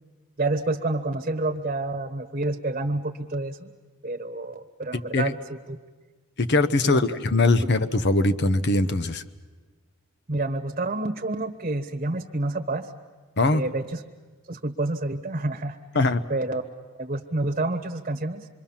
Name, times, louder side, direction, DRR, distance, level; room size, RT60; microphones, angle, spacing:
voice 1, 0.4-3.7 4.0-5.4 5.7-5.8 6.8-7.0 10.3-12.9 13.5-14.0 14.5-15.8 16.3-16.6 17.0-18.5, right 2 dB, 35° right, 5 dB, 1.2 m, -28 dB
voice 2, 6.4-9.2 13.4-13.6 15.9-16.2, left 2 dB, 50° left, 13 dB, 0.9 m, -21 dB
27.0 x 22.5 x 7.2 m, 1.4 s
head